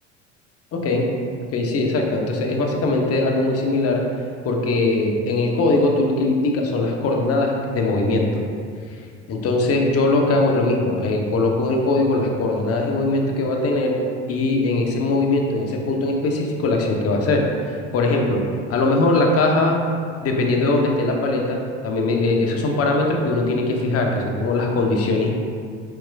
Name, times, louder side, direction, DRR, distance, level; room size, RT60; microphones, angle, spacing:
voice 1, 0.7-1.1 1.5-4.0 4.4-8.4 9.3-14.0 14.3-18.4 18.7-19.8 20.2-25.3, left 2 dB, 40° left, 1 dB, 0.8 m, -21 dB
4.6 x 4.5 x 2.3 m, 2.2 s
hypercardioid pair, 70°, 35 cm